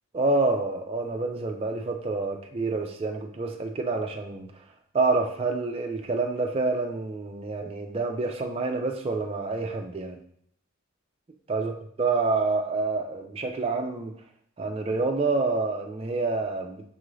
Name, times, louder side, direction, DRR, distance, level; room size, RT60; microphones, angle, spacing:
voice 1, 0.1-4.5 4.9-10.2 11.5-11.7 12.0-14.2 14.6-16.8, right 3 dB, 25° right, 3 dB, 0.3 m, -27 dB
5.4 x 2.5 x 3.1 m, 0.65 s
head